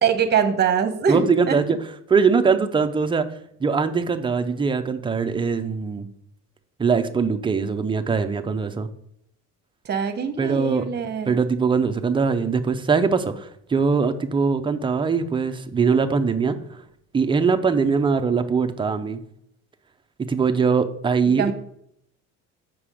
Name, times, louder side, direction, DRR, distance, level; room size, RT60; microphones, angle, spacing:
voice 1, 0.0-1.6 9.8-11.3 21.4-21.5, right 7 dB, 30° right, 8 dB, 0.9 m, -23 dB
voice 2, 1.1-1.8 2.1-3.3 3.6-6.1 6.8-8.9 10.4-10.8 11.3-16.8 17.1-19.2 20.2-21.4, right 5 dB, 15° right, 8 dB, 0.5 m, -21 dB
7.2 x 6.0 x 4.9 m, 0.71 s
cardioid pair, 155°, 33 cm